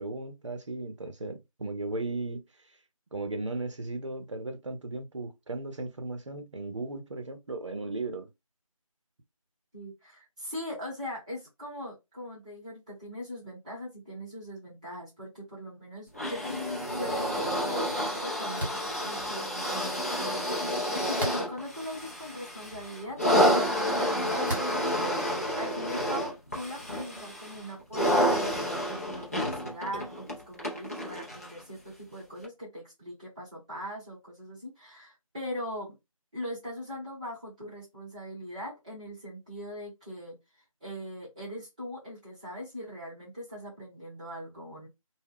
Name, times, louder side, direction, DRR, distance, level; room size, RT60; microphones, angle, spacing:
voice 1, 0.0-2.4 3.1-8.3, right 2 dB, 55° right, 0.7 m, -36 dB
voice 2, 9.7-25.1 25.6-36.0 36.3-40.4 40.8-44.9, equal, 10° right, 1.0 m, -41 dB
sound 1, 16.1-31.6 32.4-32.5, equal, 25° left, 0.5 m, -29 dB
sound 2, 18.6-18.9 21.2-21.7 22.4-22.5 24.4-24.9, right 1 dB, 40° right, 1.1 m, -34 dB
2.2 x 2.1 x 3.5 m
figure-of-eight pair, 170°, 18 cm